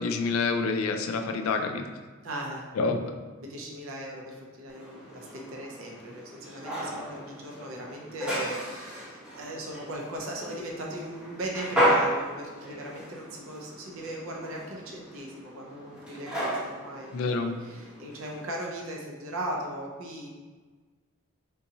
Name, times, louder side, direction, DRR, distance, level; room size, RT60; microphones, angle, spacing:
voice 1, 0.0-1.8 2.8-3.1 17.1-17.6, left 4 dB, 75° left, 6 dB, 0.3 m, -27 dB
voice 2, 2.2-2.7 3.4-17.1 17.6-20.3, right 1 dB, 70° right, -1 dB, 0.5 m, -38 dB
sound 1, 4.7-18.4, right 1 dB, 5° right, 0.9 m, -33 dB
3.7 x 2.7 x 2.7 m, 1.4 s
head